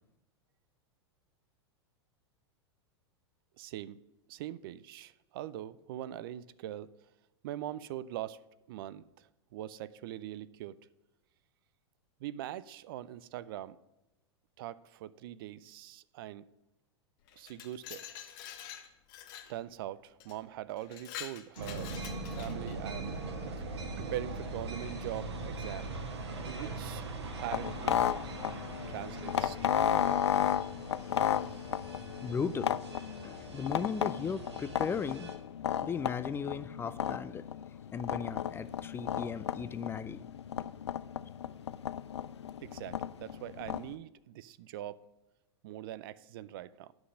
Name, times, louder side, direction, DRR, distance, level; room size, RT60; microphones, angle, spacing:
voice 1, 3.6-4.0 4.3-6.9 7.4-8.4 8.7-10.8 12.2-13.8 14.6-16.5 17.4-18.1 19.5-22.0 22.3-23.1 23.5-23.6 24.0-25.9 26.4-27.0 27.4-28.0 28.9-30.5 42.6-45.0 45.6-46.9, right 13 dB, 55° right, 0.5 m, -42 dB
Glass, 17.3-19.6 20.2-20.4 20.8-22.8, left 10 dB, 50° left, 1.1 m, -46 dB
sound 1, 21.6-35.4, right 2 dB, 75° right, 1.7 m, -41 dB
sound 2, 27.5-43.9, left 9 dB, 75° left, 0.4 m, -34 dB
voice 2, 32.2-32.7 33.2-35.3 35.8-37.4 37.9-40.3, left 6 dB, 15° left, 0.4 m, -36 dB
9.4 x 6.1 x 6.4 m
figure-of-eight pair, 95°, 14 cm